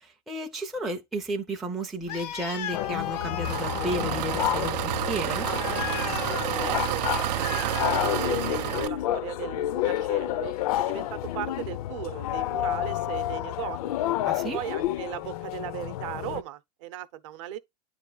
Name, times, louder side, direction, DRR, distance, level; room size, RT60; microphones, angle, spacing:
voice 1, 0.0-5.5 14.2-14.6, right 1 dB, ahead, 0.4 m, -33 dB
Animal, 2.0-8.8, left 10 dB, 85° left, 1.0 m, -37 dB
sound 1, 2.7-16.4, left 13 dB, 65° left, 0.5 m, -30 dB
Engine, 3.4-8.9, right 16 dB, 90° right, 0.4 m, -30 dB
voice 2, 6.5-7.0 7.4-14.1 14.5-17.6, right 13 dB, 50° right, 0.7 m, -37 dB
9.7 x 3.3 x 3.8 m
supercardioid pair, 180°, 20 cm